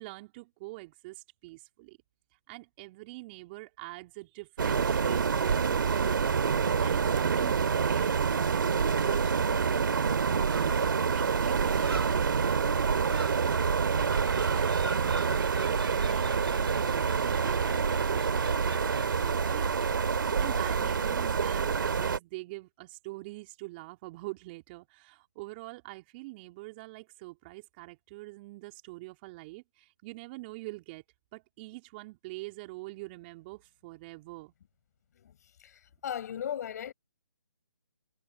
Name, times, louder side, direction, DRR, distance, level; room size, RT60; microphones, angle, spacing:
voice 1, 0.0-2.0 2.5-13.4 14.1-19.7 20.1-31.0 31.3-34.5, right 22 dB, 25° right, 3.5 m, -45 dB
sound 1, 4.6-22.2, right 6 dB, 60° right, 3.0 m, -27 dB
Gull seagull, 8.5-20.9, right 2 dB, 85° right, 5.4 m, -38 dB
voice 2, 35.6-36.9, left 9 dB, 45° left, 7.4 m, -37 dB
figure-of-eight pair, 145°, 13 cm